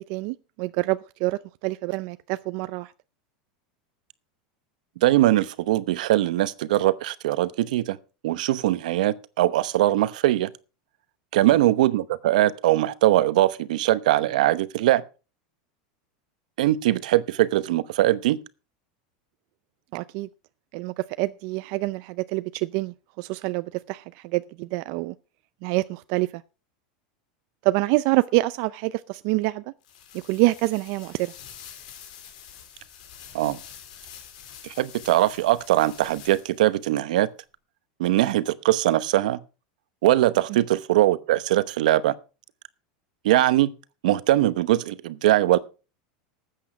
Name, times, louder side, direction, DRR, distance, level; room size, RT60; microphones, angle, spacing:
voice 1, 0.0-2.9 19.9-20.3 20.7-25.1 25.6-26.4 27.6-29.6 30.1-31.3 40.5-40.6, right 21 dB, 55° right, 0.5 m, -26 dB
voice 2, 5.0-8.0 8.2-10.5 11.3-15.0 16.6-18.4 33.3-33.6 34.8-37.3 38.0-39.4 40.0-42.1 43.2-43.7 44.0-45.6, right 15 dB, 80° right, 0.9 m, -21 dB
sound 1, 29.8-36.7, left 9 dB, 75° left, 3.7 m, -46 dB
13.5 x 8.5 x 5.1 m
supercardioid pair, 140°, 4 cm